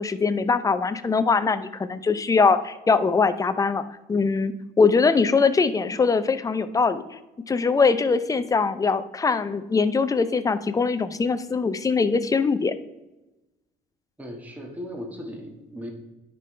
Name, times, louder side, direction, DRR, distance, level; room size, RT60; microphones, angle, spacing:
voice 1, 0.0-3.8 4.1-7.2 7.5-12.7, left 4 dB, 20° left, 12 dB, 0.5 m, -22 dB
voice 2, 14.2-15.9, equal, 10° right, 0 dB, 1.7 m, -37 dB
11.0 x 5.5 x 3.3 m, 1.0 s
cardioid pair, 110°, 17 cm